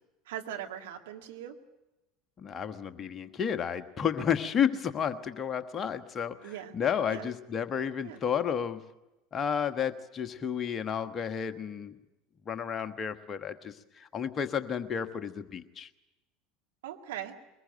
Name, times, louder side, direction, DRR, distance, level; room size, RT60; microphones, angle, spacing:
voice 1, 0.3-1.6 6.4-6.7 7.1-7.3 8.0-8.2 16.8-17.3, right 11 dB, 65° right, 2 dB, 2.1 m, -40 dB
voice 2, 2.4-8.8 9.3-11.9 12.5-15.9, left 8 dB, 30° left, 10 dB, 1.3 m, -32 dB
22.5 x 21.0 x 7.8 m, 0.99 s
figure-of-eight pair, 70°, 0 cm